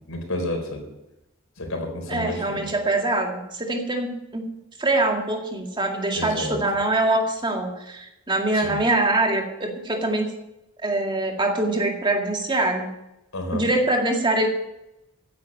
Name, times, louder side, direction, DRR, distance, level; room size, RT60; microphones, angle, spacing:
voice 1, 0.1-0.9 1.6-2.7 6.1-6.6 8.5-8.8 13.3-13.6, left 1 dB, 80° left, 4 dB, 4.2 m, -30 dB
voice 2, 2.1-4.4 4.8-10.3 10.8-12.9 13.5-14.5, right 2 dB, 25° right, 2 dB, 2.1 m, -24 dB
15.0 x 9.4 x 6.6 m, 0.89 s
head